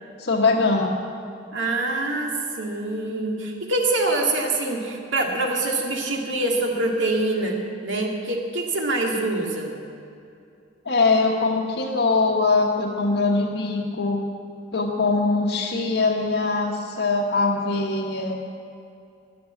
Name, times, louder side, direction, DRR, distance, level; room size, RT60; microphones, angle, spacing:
voice 1, 0.2-0.9 10.8-14.2 14.7-18.4, left 3 dB, 65° left, -3 dB, 1.0 m, -22 dB
voice 2, 1.5-9.7, right 2 dB, 75° right, 1 dB, 2.1 m, -25 dB
11.5 x 11.0 x 8.5 m, 2.5 s
head